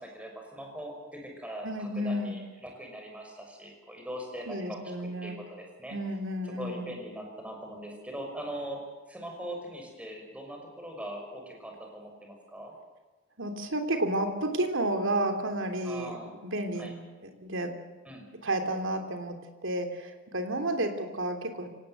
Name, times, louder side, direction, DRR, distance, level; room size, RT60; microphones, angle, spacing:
voice 1, 0.0-4.8 5.2-6.0 6.4-8.8 9.1-12.7 15.8-16.3 16.8-16.9 18.0-18.3, equal, 5° right, 1 dB, 6.0 m, -41 dB
voice 2, 1.6-2.4 4.5-5.4 5.9-6.9 13.4-16.9 17.2-17.7 18.4-19.4 19.6-21.7, right 1 dB, 60° right, 6 dB, 3.3 m, -31 dB
24.5 x 18.5 x 8.0 m, 1.3 s
head